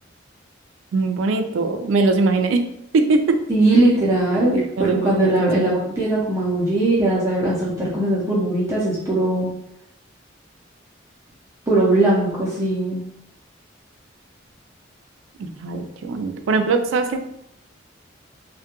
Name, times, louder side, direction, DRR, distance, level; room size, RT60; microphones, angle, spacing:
voice 1, 0.9-2.7 2.9-3.4 4.5-5.9 15.4-17.2, right 3 dB, 80° right, 6 dB, 0.3 m, -21 dB
voice 2, 3.5-9.5 11.7-13.0, right 2 dB, 15° right, -7 dB, 0.4 m, -20 dB
2.2 x 2.1 x 2.8 m, 0.76 s
head